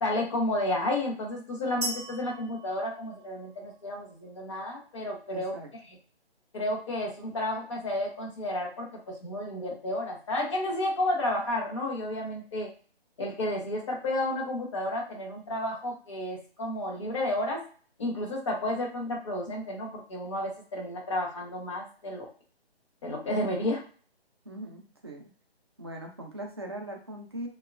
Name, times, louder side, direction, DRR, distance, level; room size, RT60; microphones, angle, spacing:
voice 1, 0.0-5.5 6.5-12.7 13.2-17.6 18.0-22.3 23.0-23.8, left 1 dB, 30° left, -1 dB, 0.7 m, -31 dB
sound 1, 1.8-3.8, right 2 dB, 55° right, 0.8 m, -38 dB
voice 2, 5.3-5.7 24.4-25.3 25.8-27.5, right 1 dB, 25° right, 0 dB, 0.4 m, -40 dB
2.8 x 2.2 x 2.3 m, 0.42 s
figure-of-eight pair, 140°, 32 cm